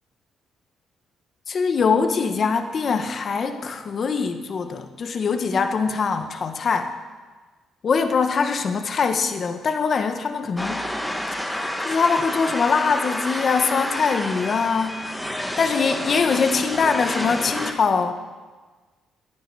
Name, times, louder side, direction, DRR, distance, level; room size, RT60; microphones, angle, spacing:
voice 1, 1.5-6.9 7.8-10.8 11.5-14.9 15.6-18.2, left 5 dB, 50° left, 7 dB, 1.3 m, -23 dB
sound 1, 10.6-17.7, left 1 dB, 10° left, 1.8 m, -29 dB
23.0 x 9.3 x 4.8 m, 1.3 s
cardioid pair, 90°, 0 cm